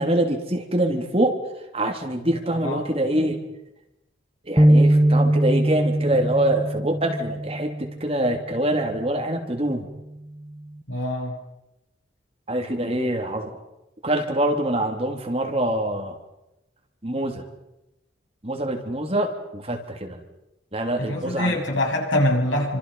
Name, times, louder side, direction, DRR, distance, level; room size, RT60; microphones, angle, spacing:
voice 1, 0.0-1.4 1.7-3.4 4.4-9.9 12.5-13.6 14.0-16.2 17.0-17.4 18.4-20.2 20.7-21.6, right 1 dB, 30° right, 3 dB, 3.2 m, -25 dB
sound 1, 4.6-8.1, right 1 dB, 10° right, 0.9 m, -20 dB
voice 2, 10.9-11.4 21.0-22.8, left 1 dB, 80° left, 0 dB, 7.9 m, -24 dB
29.0 x 26.0 x 5.7 m, 0.92 s
head